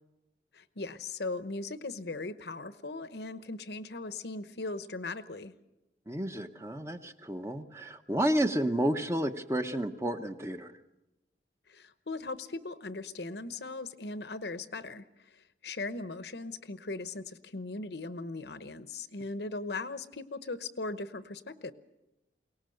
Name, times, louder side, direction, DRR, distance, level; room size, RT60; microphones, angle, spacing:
voice 1, 0.5-5.5 11.7-21.7, left 3 dB, 65° left, 12 dB, 0.9 m, -39 dB
voice 2, 6.1-10.7, right 1 dB, 15° right, 7 dB, 0.9 m, -31 dB
22.5 x 18.5 x 7.8 m, 0.95 s
head